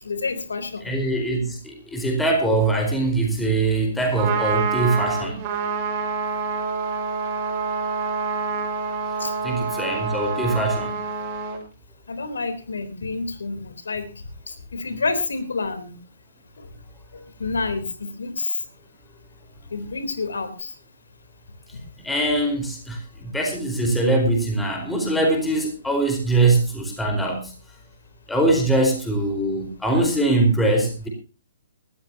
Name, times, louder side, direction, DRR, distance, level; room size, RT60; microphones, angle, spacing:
voice 1, 0.0-0.9 9.2-9.3 12.1-14.0 14.5-16.0 17.1-18.5 19.7-20.7, left 3 dB, 75° left, 10 dB, 3.6 m, -29 dB
voice 2, 0.8-5.4 9.4-10.9 22.0-27.5 28.3-31.1, right 2 dB, 5° left, 2 dB, 4.4 m, -22 dB
Trumpet, 4.0-11.6, right 5 dB, 35° right, 5.2 m, -27 dB
20.0 x 14.0 x 2.9 m, 0.32 s
figure-of-eight pair, 130°, 0 cm